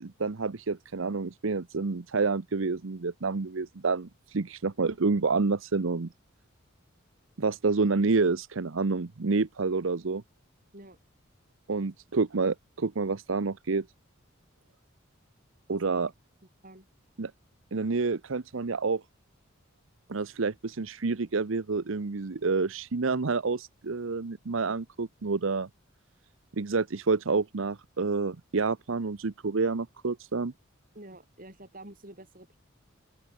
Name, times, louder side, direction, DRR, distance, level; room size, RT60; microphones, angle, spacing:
voice 1, 0.0-6.1 7.4-10.2 11.7-13.9 15.7-16.1 17.2-17.3 17.7-19.0 20.1-25.7 26.5-30.5, right 4 dB, 75° right, 0.8 m, -28 dB
voice 2, 30.9-32.6, right 1 dB, 45° right, 6.5 m, -48 dB
open air
head